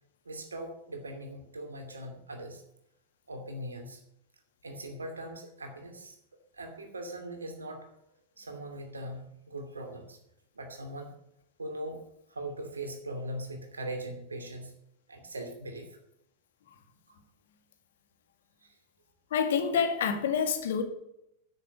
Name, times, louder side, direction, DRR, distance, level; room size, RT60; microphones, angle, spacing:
voice 1, 0.2-2.6 3.3-4.0 4.6-6.2 6.5-8.0 8.4-10.2 10.5-11.1 11.6-12.0 12.3-14.8 15.1-15.9 17.1-17.2 18.6-18.7, right 1 dB, 75° right, 4 dB, 2.6 m, -40 dB
voice 2, 19.3-20.8, left 6 dB, 60° left, 7 dB, 1.9 m, -27 dB
10.0 x 8.3 x 7.6 m, 0.78 s
figure-of-eight pair, 90°, 0 cm